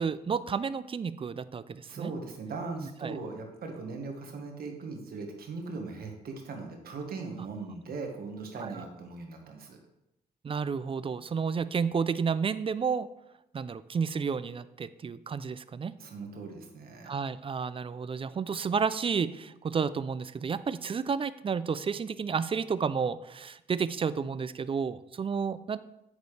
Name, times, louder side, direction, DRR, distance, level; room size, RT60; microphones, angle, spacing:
voice 1, 0.0-2.1 3.0-3.2 8.6-8.7 10.4-13.1 13.5-15.9 17.1-25.8, right 6 dB, 35° right, 15 dB, 0.4 m, -31 dB
voice 2, 1.8-9.8 16.0-17.1, right 4 dB, 65° right, 3 dB, 1.6 m, -39 dB
8.0 x 6.4 x 3.3 m, 0.86 s
cardioid pair, 65°, 17 cm